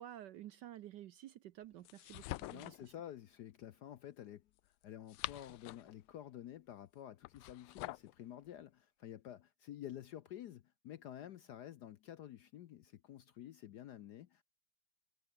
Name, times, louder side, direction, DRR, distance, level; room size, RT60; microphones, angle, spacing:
voice 1, 0.0-2.9, right 12 dB, 70° right, 1.1 m, -52 dB
sound 1, 1.8-2.9 4.8-6.0 7.2-8.1, left 18 dB, 85° left, 1.5 m, -46 dB
voice 2, 2.5-14.4, left 11 dB, 65° left, 1.0 m, -51 dB
omnidirectional pair, 2.3 m